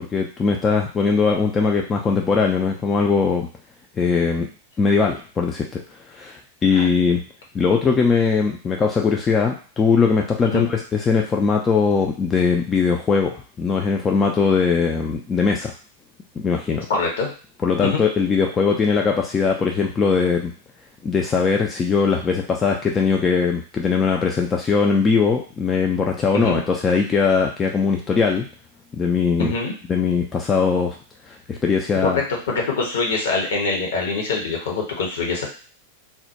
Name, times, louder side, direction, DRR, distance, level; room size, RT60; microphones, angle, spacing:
voice 1, 0.0-3.5 4.0-4.5 4.8-5.8 6.1-7.2 7.5-10.8 11.1-15.7 16.4-16.9 17.6-20.5 21.0-28.5 29.0-29.5 29.9-31.0 31.5-32.2, left 5 dB, 20° left, 0 dB, 0.3 m, -20 dB
voice 2, 16.9-17.3 17.8-18.0 26.3-26.6 29.4-29.7 32.0-35.5, left 3 dB, 60° left, 0 dB, 0.7 m, -24 dB
2.2 x 2.0 x 2.8 m, 0.38 s
figure-of-eight pair, 90°, 0 cm